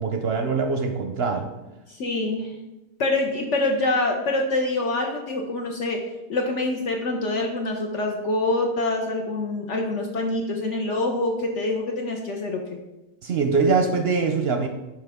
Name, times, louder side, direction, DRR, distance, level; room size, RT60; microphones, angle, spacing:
voice 1, 0.0-1.5 13.2-14.7, right 4 dB, 55° right, 5 dB, 0.7 m, -23 dB
voice 2, 1.9-2.5 3.0-12.6, left 2 dB, 60° left, 1 dB, 1.1 m, -25 dB
9.9 x 4.5 x 3.6 m, 1.0 s
omnidirectional pair, 1.5 m